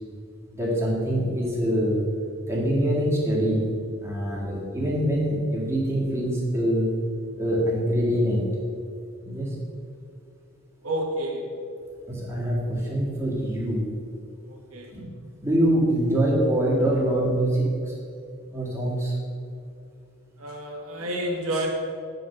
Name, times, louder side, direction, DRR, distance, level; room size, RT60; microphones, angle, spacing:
voice 1, 0.5-2.0 2.5-3.7 4.0-6.9 7.4-8.4 9.2-9.6 12.1-13.8 14.9-15.0 15.4-17.9 18.5-19.2, right 1 dB, 15° right, -5 dB, 2.0 m, -24 dB
voice 2, 10.8-11.5 14.5-14.9 20.4-21.7, right 1 dB, 80° right, -1 dB, 1.4 m, -29 dB
7.9 x 5.0 x 6.1 m, 2.4 s
head